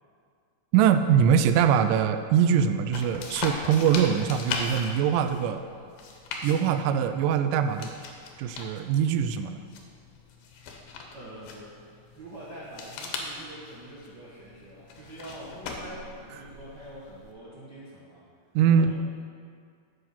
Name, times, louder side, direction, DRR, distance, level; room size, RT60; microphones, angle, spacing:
voice 1, 0.7-5.6 6.4-7.9 8.4-9.6 18.6-18.9, right 8 dB, 80° right, 9 dB, 2.0 m, -23 dB
sound 1, 2.9-17.3, left 4 dB, 80° left, 2.7 m, -40 dB
voice 2, 11.1-11.8 12.2-18.2 18.7-18.9, right 1 dB, 55° right, -8 dB, 1.2 m, -44 dB
8.2 x 7.8 x 5.7 m, 2.2 s
omnidirectional pair, 4.0 m